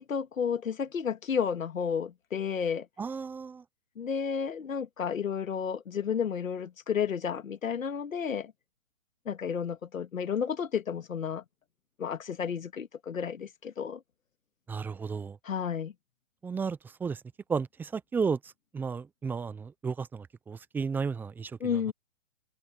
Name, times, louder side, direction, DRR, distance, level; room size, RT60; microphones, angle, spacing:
voice 1, 0.0-2.9 4.0-8.5 9.3-11.4 12.0-14.0 15.4-15.9 21.6-21.9, left 7 dB, 75° left, 2.1 m, -32 dB
voice 2, 3.0-3.6 14.7-15.4 16.4-17.2 17.5-18.4 18.7-21.8, right 5 dB, 5° right, 0.6 m, -33 dB
open air
hypercardioid pair, 135°, 40 cm